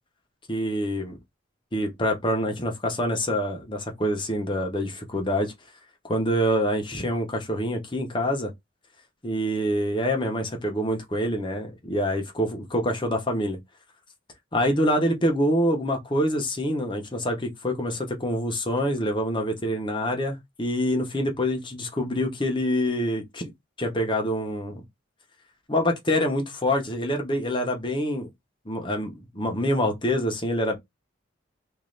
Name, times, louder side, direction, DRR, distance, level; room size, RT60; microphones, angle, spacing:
voice 1, 0.5-1.1 1.7-5.5 6.0-8.5 9.2-13.6 14.5-23.5 23.8-24.8 25.7-28.3 28.7-30.8, equal, 25° left, 0.9 m, -26 dB
3.2 x 2.6 x 3.9 m
head